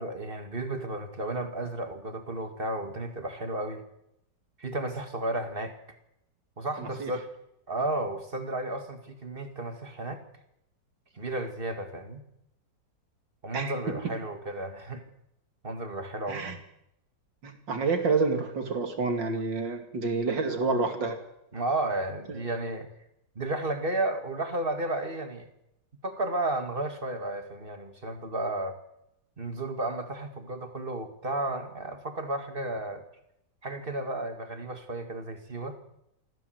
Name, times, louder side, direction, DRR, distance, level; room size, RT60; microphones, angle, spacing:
voice 1, 0.0-3.8 4.6-5.8 6.6-7.3 7.7-10.2 11.2-12.2 13.4-15.0 15.6-16.6 21.5-22.9 23.4-25.5 26.0-28.8 29.4-33.0 33.6-35.8, right 2 dB, 30° right, 7 dB, 2.1 m, -33 dB
voice 2, 6.8-7.1 13.5-14.1 16.3-16.6 17.4-21.2 22.3-22.4, right 4 dB, 85° right, 6 dB, 3.2 m, -29 dB
25.0 x 15.0 x 8.0 m, 0.82 s
omnidirectional pair, 1.9 m